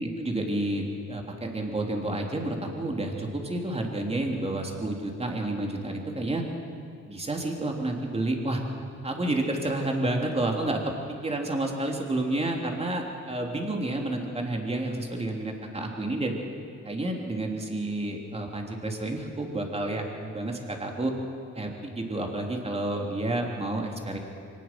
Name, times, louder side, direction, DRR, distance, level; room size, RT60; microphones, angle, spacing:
voice 1, 0.0-6.4 7.0-8.6 9.0-10.9 11.2-16.3 16.8-21.1 21.5-24.2, right 1 dB, 20° right, 1 dB, 3.3 m, -30 dB
24.0 x 19.0 x 6.1 m, 2.4 s
cardioid pair, 90°, 30 cm